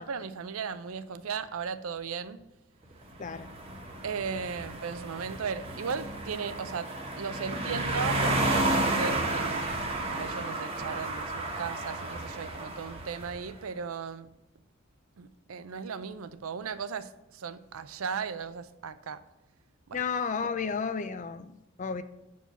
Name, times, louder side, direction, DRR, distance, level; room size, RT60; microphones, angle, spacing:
voice 1, 0.0-2.4 4.0-6.9 7.2-9.7 10.1-14.3 15.2-19.2 19.9-20.0, right 6 dB, 85° right, 0.5 m, -36 dB
sound 1, 3.1-13.4, right 2 dB, 25° right, 1.1 m, -32 dB
voice 2, 3.2-3.5 19.9-22.0, left 5 dB, 35° left, 0.4 m, -32 dB
7.2 x 4.7 x 6.9 m
head